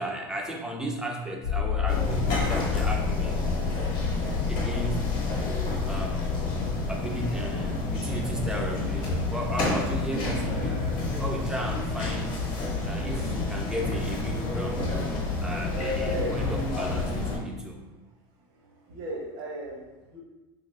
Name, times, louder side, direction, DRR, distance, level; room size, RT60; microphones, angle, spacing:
voice 1, 0.0-3.6 4.5-5.1 5.9-6.3 6.9-14.9 15.4-17.8, right 1 dB, 5° right, 1 dB, 0.3 m, -35 dB
Motor vehicle (road), 1.4-6.8, left 7 dB, 85° left, 0.7 m, -31 dB
sound 1, 1.9-17.4, left 3 dB, 40° left, 0.8 m, -29 dB
voice 2, 16.0-16.4 18.5-20.2, right 1 dB, 70° right, -1 dB, 0.8 m, -36 dB
3.5 x 2.4 x 3.2 m, 1.1 s
supercardioid pair, 155°, 12 cm